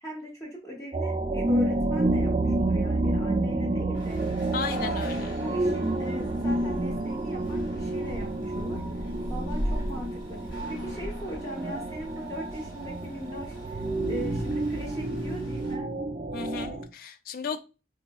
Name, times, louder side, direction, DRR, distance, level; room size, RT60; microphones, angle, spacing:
voice 1, 0.0-4.2 4.7-5.0 5.4-8.8 9.3-13.8 14.1-15.9, equal, 20° left, -2 dB, 0.8 m, -39 dB
sound 1, 0.9-16.8, right 2 dB, 30° right, 0.3 m, -29 dB
sound 2, 3.9-15.8, equal, 75° left, 1.5 m, -40 dB
voice 2, 4.5-5.4 16.3-17.6, left 5 dB, 50° left, 9 dB, 0.3 m, -34 dB
sound 3, 8.2-14.8, right 1 dB, 15° right, 0.8 m, -49 dB
4.0 x 2.7 x 2.2 m, 0.31 s
head